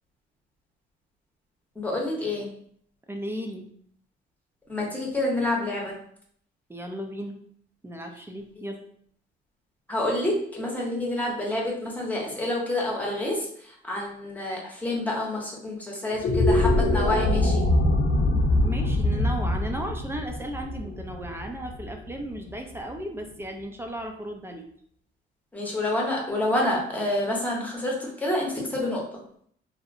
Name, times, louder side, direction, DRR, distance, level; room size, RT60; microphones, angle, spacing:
voice 1, 1.8-2.5 4.7-6.0 9.9-17.7 25.5-29.2, left 1 dB, 10° left, -2 dB, 0.8 m, -28 dB
voice 2, 3.1-3.6 6.7-7.4 7.8-8.8 18.6-24.7, right 1 dB, 10° right, 3 dB, 0.4 m, -35 dB
sound 1, 16.1-22.5, left 1 dB, 70° left, 0.6 m, -23 dB
2.7 x 2.1 x 2.6 m, 0.63 s
cardioid pair, 90°, 20 cm